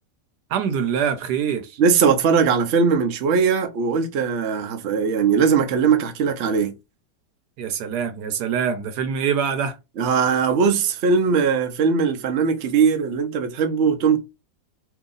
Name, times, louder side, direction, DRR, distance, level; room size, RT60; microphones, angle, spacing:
voice 1, 0.5-1.8 7.6-9.8, right 7 dB, 70° right, 1.1 m, -24 dB
voice 2, 1.8-6.7 10.0-14.2, right 5 dB, 90° right, 0.6 m, -20 dB
2.9 x 2.7 x 3.7 m
omnidirectional pair, 2.0 m